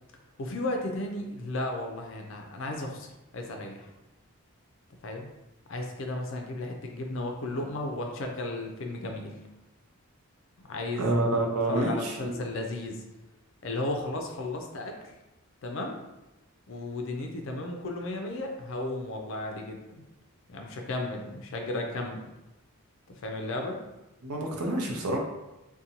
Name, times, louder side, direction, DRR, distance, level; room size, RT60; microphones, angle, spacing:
voice 1, 0.4-3.9 5.0-5.3 5.7-9.3 10.6-11.1 11.7-13.0 13.6-15.1 15.6-16.0 16.7-20.0 20.5-22.3 23.2-23.8, left 2 dB, 60° left, 2 dB, 0.4 m, -34 dB
voice 2, 11.0-12.5 24.2-25.2, right 1 dB, 85° right, 0 dB, 0.6 m, -28 dB
2.6 x 2.2 x 2.8 m, 1.0 s
head